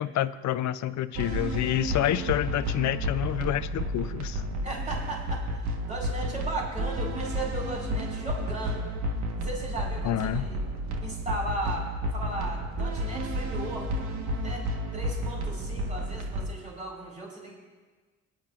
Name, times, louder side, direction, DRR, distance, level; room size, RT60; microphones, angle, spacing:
voice 1, 0.0-4.4 10.0-10.5, left 12 dB, 70° left, 15 dB, 0.5 m, -28 dB
sound 1, 1.1-16.5, equal, 65° right, 1.4 m, -31 dB
voice 2, 4.6-8.9 9.3-10.6 11.0-14.7 14.9-17.6, right 1 dB, 25° right, -3 dB, 4.3 m, -37 dB
22.0 x 10.5 x 2.5 m, 1.4 s
cardioid pair, 90°, 30 cm